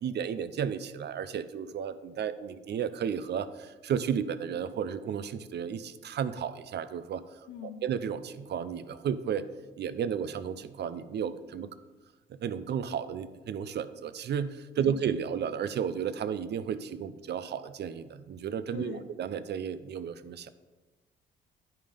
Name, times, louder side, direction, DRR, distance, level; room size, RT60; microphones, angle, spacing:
voice 1, 0.0-7.2 7.6-9.5 9.8-11.7 12.3-20.5, right 8 dB, 60° right, 14 dB, 0.6 m, -33 dB
voice 2, 7.5-7.8 14.8-15.0 18.7-19.1, left 9 dB, 75° left, 11 dB, 0.8 m, -42 dB
9.7 x 5.4 x 5.1 m, 1.2 s
cardioid pair, 90°, 20 cm